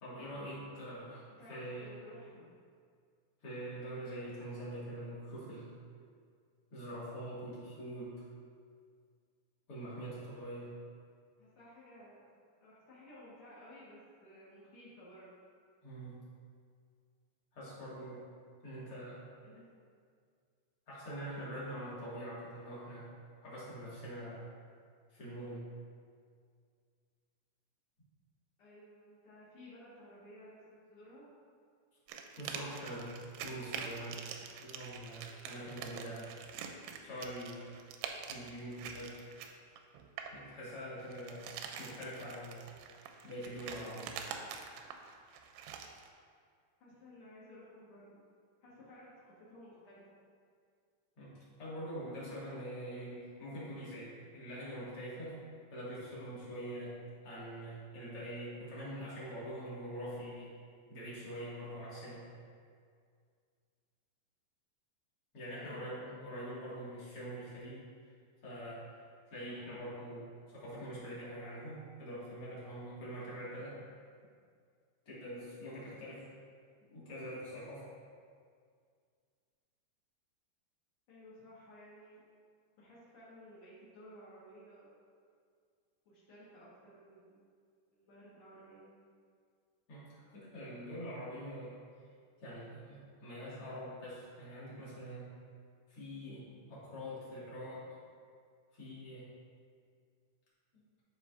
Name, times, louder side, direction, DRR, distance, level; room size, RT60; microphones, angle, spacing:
voice 1, 0.0-1.2 1.5-1.9 3.4-5.7 6.7-8.3 9.7-10.8 15.8-16.2 17.5-18.3 18.6-19.2 20.9-23.1 23.4-24.5 25.1-25.7 32.4-36.3 37.0-37.7 38.3-39.3 40.3-41.5 41.8-42.6 43.2-44.2 51.2-55.4 55.7-60.5 60.9-62.3 65.3-67.8 68.4-68.8 69.3-73.8 75.1-76.3 76.9-77.9 89.9-91.7 92.4-95.3 95.9-97.8 98.7-99.3, equal, 45° left, -9 dB, 2.0 m, -44 dB
voice 2, 1.3-2.5 11.4-12.3 12.6-15.3 19.4-19.6 28.6-31.2 46.8-48.2 48.6-50.1 65.6-66.1 81.1-82.2 82.8-84.9 86.0-87.4 87.9-88.9, equal, 75° left, -9 dB, 1.2 m, -55 dB
sound 1, 32.1-40.4 41.0-46.1, right 7 dB, 90° right, 2.8 m, -45 dB
12.5 x 4.9 x 2.6 m, 2.1 s
omnidirectional pair, 5.0 m